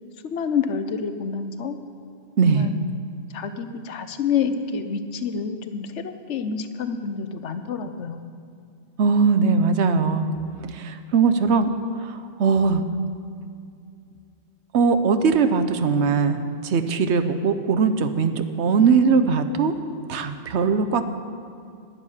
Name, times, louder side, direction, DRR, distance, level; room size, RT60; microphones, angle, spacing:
voice 1, 0.2-1.8 2.4-2.7 3.3-8.4, left 6 dB, 80° left, 9 dB, 1.1 m, -28 dB
voice 2, 2.4-2.7 9.0-10.3 10.7-11.7 12.1-12.8 14.7-19.7 20.1-21.0, right 5 dB, 75° right, 10 dB, 1.1 m, -20 dB
11.5 x 7.1 x 9.9 m, 2.4 s
omnidirectional pair, 1.2 m